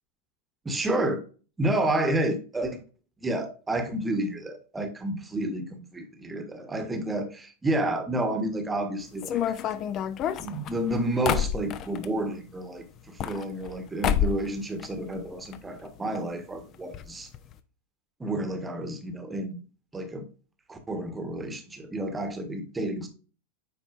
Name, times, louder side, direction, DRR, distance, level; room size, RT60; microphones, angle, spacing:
voice 1, 0.7-1.2 1.6-2.8 3.2-9.6 10.4-17.3 18.2-19.5 19.9-20.3 20.7-23.1, right 1 dB, 10° right, 7 dB, 1.1 m, -30 dB
sound 1, 9.2-12.1 13.0-13.8 14.0-14.5 14.8-15.6 15.8-15.9 16.1-16.2 16.9-17.0 17.3-17.5, left 9 dB, 35° left, 0.5 m, -28 dB
9.3 x 4.4 x 2.5 m, 0.37 s
figure-of-eight pair, 90°, 0 cm